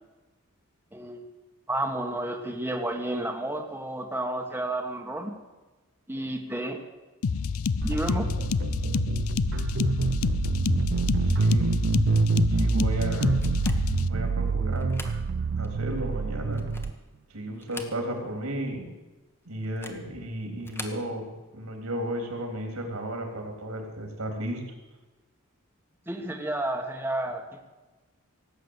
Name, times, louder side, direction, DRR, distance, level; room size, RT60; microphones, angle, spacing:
voice 1, 0.9-1.3 1.7-5.3 6.1-6.8 7.8-8.3 26.1-27.4, right 1 dB, 10° right, 1 dB, 1.4 m, -31 dB
sound 1, 7.2-14.1, left 5 dB, 70° left, 0.5 m, -28 dB
sound 2, 7.8-16.9, right 4 dB, 55° right, 0.4 m, -26 dB
voice 2, 11.2-11.7 12.5-13.3 14.0-15.0 15.6-16.7 17.3-18.9 19.5-24.6, right 1 dB, 80° right, 3 dB, 3.6 m, -34 dB
sound 3, 13.4-14.1 14.7-15.2 15.6-15.7 16.4-17.1 17.5-18.3 18.6-18.7 19.6-20.1 20.6-21.0, left 2 dB, 10° left, 1.3 m, -43 dB
17.5 x 8.6 x 8.1 m, 1.2 s
head